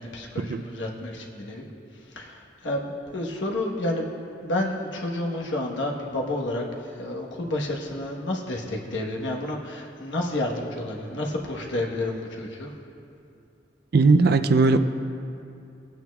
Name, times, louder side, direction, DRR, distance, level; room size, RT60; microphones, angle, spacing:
voice 1, 0.0-1.6 2.1-4.1 4.4-12.7, left 1 dB, 85° left, -1 dB, 1.2 m, -30 dB
voice 2, 13.9-14.8, right 3 dB, 60° right, 9 dB, 0.4 m, -18 dB
19.5 x 8.9 x 2.3 m, 2.6 s
head